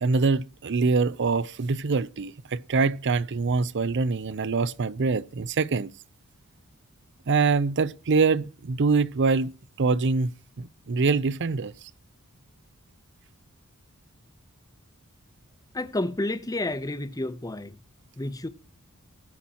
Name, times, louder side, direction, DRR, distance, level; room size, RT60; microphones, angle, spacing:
voice 1, 0.0-5.9 7.3-9.5 9.8-10.3 10.6-11.7, right 4 dB, 55° right, 0.5 m, -24 dB
voice 2, 15.7-17.7 18.2-18.5, left 2 dB, 15° left, 0.8 m, -30 dB
19.5 x 8.5 x 2.9 m
head